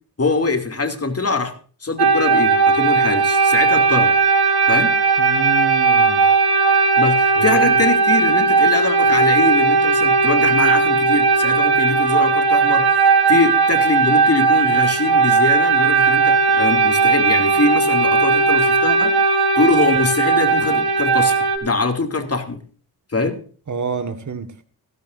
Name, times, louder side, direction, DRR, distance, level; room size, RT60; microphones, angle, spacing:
voice 1, 0.2-1.5 1.8-4.2 4.7-5.0 7.0-19.2 19.6-21.4 21.6-22.6 23.1-23.4, left 3 dB, 40° left, 2.7 m, -22 dB
sound 1, 2.0-21.6, right 4 dB, 75° right, 3.2 m, -16 dB
voice 2, 5.2-6.2 7.4-7.8 23.7-24.6, right 5 dB, 50° right, 1.8 m, -28 dB
16.0 x 15.5 x 2.6 m
cardioid pair, 65°, 39 cm